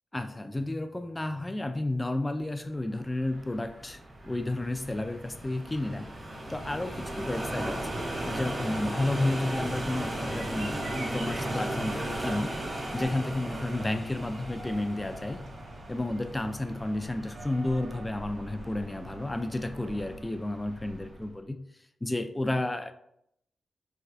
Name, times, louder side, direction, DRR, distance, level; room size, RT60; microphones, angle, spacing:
voice 1, 0.1-6.1 6.5-12.6 12.9-15.4 15.9-21.6 22.0-22.9, left 1 dB, 15° left, 0.3 m, -32 dB
sound 1, 3.0-21.3, right 1 dB, 35° right, 0.7 m, -37 dB
sound 2, 9.7-20.2, right 2 dB, 70° right, 0.4 m, -46 dB
4.3 x 2.3 x 2.4 m
cardioid pair, 85°, 0 cm